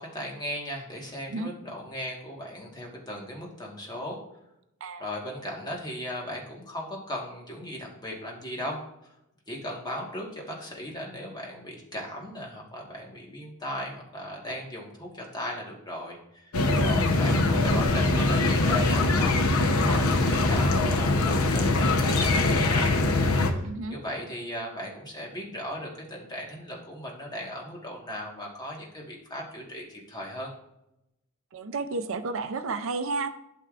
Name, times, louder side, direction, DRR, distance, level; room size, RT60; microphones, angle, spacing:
voice 1, 0.0-4.2 5.0-8.8 9.5-16.6 16.8-19.4 19.6-23.6 23.9-30.5, equal, 20° left, -2 dB, 1.5 m, -37 dB
sound 1, 16.5-23.5, left 2 dB, 90° left, 0.8 m, -23 dB
voice 2, 16.7-17.6 23.6-24.0 31.5-33.3, right 3 dB, 65° right, 10 dB, 0.5 m, -32 dB
12.0 x 5.7 x 2.5 m, 0.87 s
head